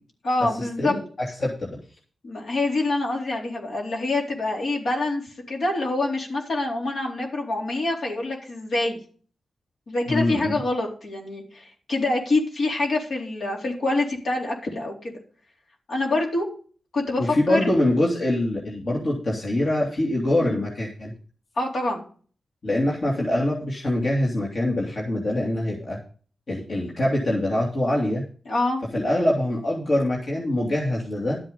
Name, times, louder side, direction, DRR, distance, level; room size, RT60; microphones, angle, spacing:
voice 1, 0.2-0.9 2.2-5.2 5.5-9.0 9.9-15.2 15.9-16.5 16.9-17.7 20.4-20.6 21.6-22.0 28.5-28.8, left 2 dB, 65° left, -1 dB, 4.0 m, -26 dB
voice 2, 0.8-1.8 10.1-10.6 17.2-21.1 22.6-26.0 26.5-28.2 28.9-31.4, left 1 dB, 50° left, -3 dB, 2.9 m, -24 dB
12.5 x 7.9 x 5.5 m, 0.42 s
wide cardioid pair, 95°, 0 cm